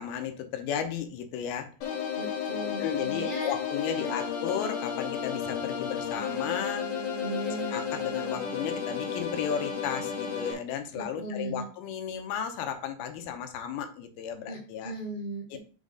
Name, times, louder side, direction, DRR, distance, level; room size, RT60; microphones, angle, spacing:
voice 1, 0.0-1.7 2.8-6.9 7.5-14.9 15.5-15.6, left 8 dB, 85° left, 6 dB, 2.7 m, -34 dB
sound 1, 1.8-10.5, left 7 dB, 65° left, 2.4 m, -33 dB
voice 2, 2.2-3.5 3.9-4.1 7.2-7.7 10.9-11.7 14.5-15.6, right 1 dB, 80° right, -4 dB, 0.4 m, -37 dB
6.4 x 4.1 x 4.8 m, 0.36 s
omnidirectional pair, 4.5 m